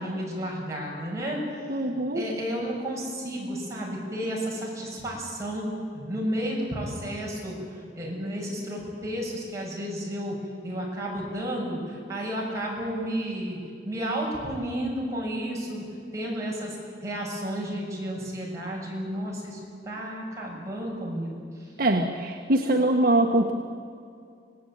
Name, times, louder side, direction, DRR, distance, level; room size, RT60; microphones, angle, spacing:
voice 1, 0.0-10.4 10.6-13.6 13.8-15.8 16.1-16.8 17.0-21.7, equal, 15° right, -4 dB, 7.4 m, -32 dB
voice 2, 1.7-2.2 21.8-23.5, right 1 dB, 55° right, 1 dB, 1.5 m, -23 dB
26.5 x 18.5 x 9.1 m, 2.3 s
head